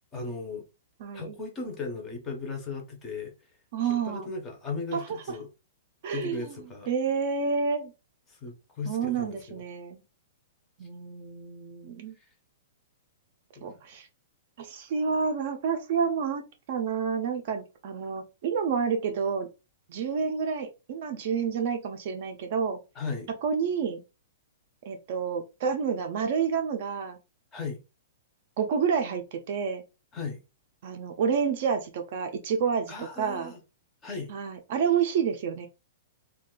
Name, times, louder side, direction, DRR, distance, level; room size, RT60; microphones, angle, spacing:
voice 1, 0.1-0.6 1.1-3.3 3.9-5.5 6.1-6.9 8.3-9.6 13.6-13.7 23.0-23.3 27.5-27.8 30.1-30.4 32.9-33.6 34.0-34.3, left 4 dB, 15° left, 0.6 m, -36 dB
voice 2, 1.0-1.3 3.7-4.3 4.9-5.4 6.0-6.5 6.9-7.9 8.9-10.0 10.8-12.2 13.6-14.1 14.6-16.4 16.7-19.5 19.9-22.8 23.4-24.0 24.9-27.2 28.6-29.8 30.8-33.5 34.3-35.7, right 6 dB, 40° right, 0.4 m, -29 dB
2.4 x 2.3 x 3.6 m
hypercardioid pair, 180°, 0 cm